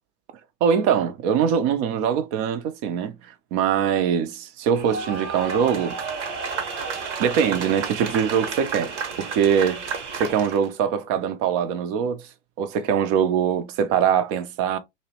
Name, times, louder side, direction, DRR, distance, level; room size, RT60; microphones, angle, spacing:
voice 1, 0.6-6.5 7.2-9.8 10.1-12.3 12.6-14.8, right 8 dB, 40° right, 0.5 m, -23 dB
sound 1, 4.7-10.7, right 5 dB, 75° right, 0.9 m, -31 dB
2.7 x 2.0 x 2.7 m
hypercardioid pair, 100°, 36 cm